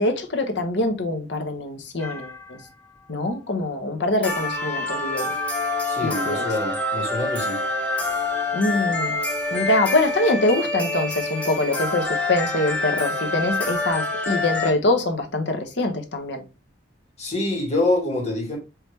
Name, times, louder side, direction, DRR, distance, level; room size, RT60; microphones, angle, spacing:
voice 1, 0.0-2.6 3.1-5.3 6.0-6.4 8.5-9.2 9.5-16.4, left 2 dB, 70° left, 1.0 m, -24 dB
sound 1, 2.0-2.6 4.2-14.7, left 2 dB, 5° left, 0.9 m, -26 dB
voice 2, 5.9-7.6 17.2-18.6, left 2 dB, 35° left, 1.9 m, -25 dB
4.8 x 3.2 x 3.3 m
head